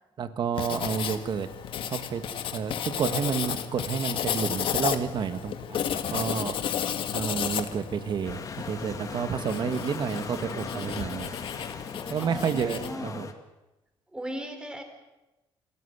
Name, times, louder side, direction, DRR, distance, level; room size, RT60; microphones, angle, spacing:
voice 1, 0.2-1.5 1.8-2.2 2.5-6.6 7.1-11.3 12.1-13.3, right 7 dB, 50° right, 10 dB, 1.7 m, -30 dB
Writing, 0.6-12.9, left 9 dB, 65° left, 1.6 m, -33 dB
sound 1, 8.2-13.3, left 5 dB, 35° left, 2.2 m, -39 dB
voice 2, 12.2-13.2 14.1-14.8, right 1 dB, 10° right, 6 dB, 4.3 m, -37 dB
27.5 x 15.0 x 8.2 m, 1.0 s
cardioid pair, 105°, 10 cm